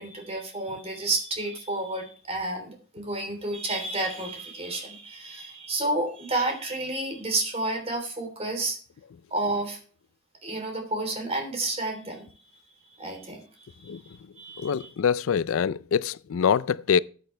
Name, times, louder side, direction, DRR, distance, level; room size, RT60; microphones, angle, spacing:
voice 1, 0.0-8.8 9.3-9.8 10.4-12.3 13.0-14.9, right 2 dB, 30° right, 3.4 m, -31 dB
voice 2, 14.6-17.0, left 7 dB, 70° left, 0.4 m, -24 dB
14.5 x 8.7 x 3.3 m
head